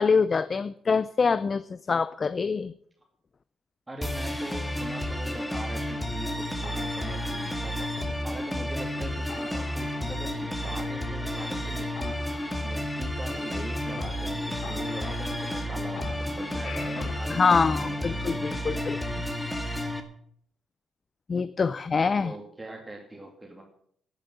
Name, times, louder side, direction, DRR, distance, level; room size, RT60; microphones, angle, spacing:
voice 1, 0.0-2.7 17.3-19.0 21.3-22.3, left 5 dB, 35° left, 15 dB, 0.5 m, -25 dB
voice 2, 3.9-18.5 22.2-23.6, right 1 dB, 15° right, 1 dB, 2.6 m, -42 dB
sound 1, 4.0-20.0, left 1 dB, 10° left, 2.0 m, -31 dB
sound 2, 6.6-8.6 9.0-9.1 9.3-10.3 10.6-11.3 11.6-11.7 12.0-14.0 14.3-14.4 14.6-15.7 16.0-17.3, left 7 dB, 65° left, 1.6 m, -45 dB
10.5 x 9.0 x 9.2 m, 0.64 s
cardioid pair, 90°, 0 cm